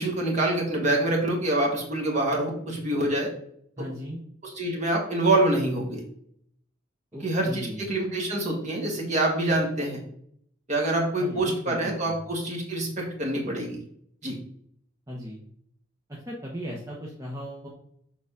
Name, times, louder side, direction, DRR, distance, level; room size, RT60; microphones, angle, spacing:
voice 1, 0.0-3.3 4.4-6.0 7.2-10.0 10.7-13.8 14.2-14.4, right 1 dB, 35° right, -1 dB, 1.8 m, -26 dB
voice 2, 3.8-4.2 7.1-7.8 11.2-12.2 15.1-15.4 16.3-17.7, equal, 15° right, -4 dB, 1.1 m, -37 dB
7.0 x 4.0 x 5.0 m, 0.67 s
head